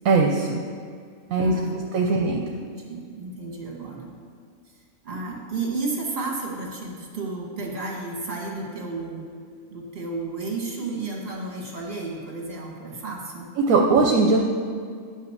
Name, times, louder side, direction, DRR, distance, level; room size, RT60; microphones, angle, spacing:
voice 1, 0.0-0.5 1.3-1.5 1.9-2.4 13.6-14.4, right 3 dB, 75° right, -1 dB, 1.1 m, -19 dB
voice 2, 1.3-1.8 2.0-2.4 2.9-4.1 5.0-9.2 9.7-13.5, right 3 dB, 45° right, -2 dB, 2.0 m, -32 dB
9.6 x 5.6 x 6.4 m, 2.1 s
omnidirectional pair, 1.5 m